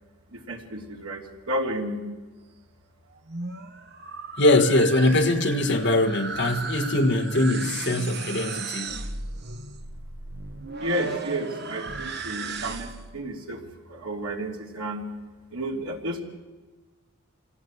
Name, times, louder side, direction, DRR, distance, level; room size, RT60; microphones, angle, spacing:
voice 1, 0.3-2.0 10.8-13.6 13.9-15.1 15.5-16.2, right 1 dB, 85° right, 1 dB, 2.9 m, -31 dB
sound 1, 3.1-13.2, right 4 dB, 50° right, 1.2 m, -36 dB
voice 2, 4.4-8.9, left 1 dB, 50° left, 4 dB, 1.6 m, -22 dB
25.5 x 17.5 x 8.2 m, 1.2 s
head